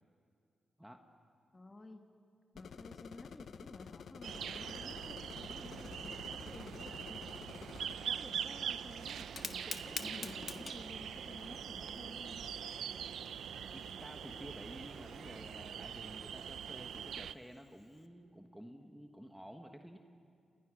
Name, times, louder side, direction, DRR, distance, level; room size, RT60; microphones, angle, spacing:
voice 1, 1.5-2.0 2.5-7.5 8.0-12.4, left 2 dB, 25° left, 3 dB, 1.6 m, -53 dB
sound 1, 2.6-8.0, left 6 dB, 70° left, 0.8 m, -50 dB
sound 2, 4.2-17.3, right 8 dB, 85° right, 0.6 m, -43 dB
Fire, 9.2-18.1, left 4 dB, 45° left, 1.5 m, -50 dB
voice 2, 13.7-20.0, equal, 5° right, 4 dB, 1.4 m, -52 dB
29.5 x 27.5 x 6.4 m, 2.3 s
cardioid pair, 95°, 0 cm